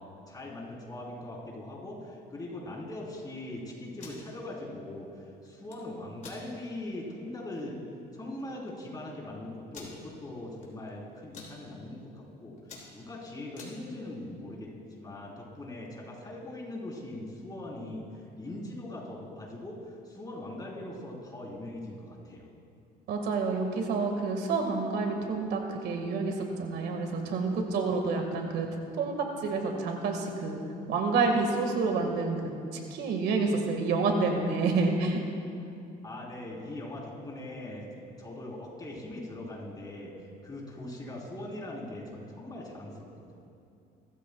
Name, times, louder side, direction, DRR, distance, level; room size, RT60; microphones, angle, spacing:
voice 1, 0.0-7.8 8.1-12.6 12.9-22.5 35.6-35.8 36.0-37.9 38.2-40.1 40.4-43.1, left 1 dB, 25° left, -3 dB, 3.7 m, -41 dB
sound 1, 3.8-4.2 5.5-5.8 6.2-6.4 6.9-7.0 7.4-7.6 8.4-8.5 8.7-8.8 9.7-10.0 10.6-10.9 11.2-11.5 12.1-12.3 12.6-13.8, left 4 dB, 45° left, 3.3 m, -47 dB
voice 2, 23.1-28.7 29.0-29.2 29.4-30.6 30.9-32.5 32.9-35.2, right 4 dB, 75° right, 3 dB, 1.7 m, -28 dB
23.0 x 14.0 x 2.3 m, 2.6 s
cardioid pair, 110°, 17 cm